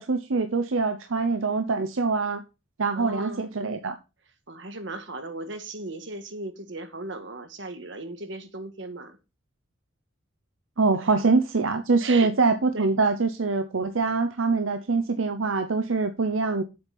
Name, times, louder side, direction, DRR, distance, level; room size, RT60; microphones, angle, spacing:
voice 1, 0.0-2.4 2.8-4.0 10.8-16.6, right 4 dB, 90° right, 0.8 m, -24 dB
voice 2, 2.9-3.4 4.5-9.2 10.9-11.1 12.0-12.3 12.7-12.9, right 2 dB, 70° right, 1.6 m, -37 dB
7.8 x 5.3 x 5.9 m
head